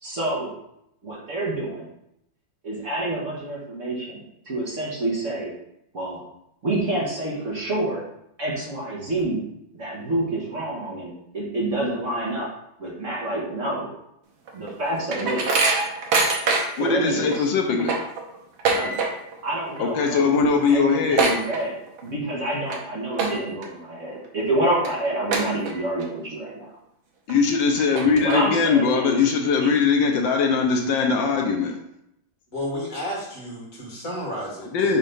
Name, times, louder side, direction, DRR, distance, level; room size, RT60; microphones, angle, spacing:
voice 1, 0.0-0.5 1.0-1.9 2.6-5.5 5.9-6.2 6.6-8.0 8.4-9.4 9.7-12.5 12.8-13.9 14.5-15.6 16.8-17.5 18.7-19.0 19.4-20.3 20.7-21.8 22.0-26.7 28.2-29.2 29.6-29.8, right 1 dB, 45° right, -4 dB, 1.5 m, -28 dB
sound 1, 14.5-16.9 17.3-17.4 17.7-19.4 19.7-20.0 20.3-20.4 20.7-22.1 22.5-22.8 23.1-23.7 24.2-24.3 24.8-24.9 25.3-26.0 26.5-26.6 27.3-27.4 27.8-28.7, right 3 dB, 85° right, 1.8 m, -24 dB
voice 2, 16.8-18.0 19.8-21.3 27.3-31.8 34.7-35.0, left 5 dB, 75° left, 2 dB, 1.4 m, -21 dB
voice 3, 32.5-35.0, equal, 45° left, -4 dB, 2.2 m, -32 dB
5.6 x 3.6 x 5.3 m, 0.79 s
omnidirectional pair, 2.1 m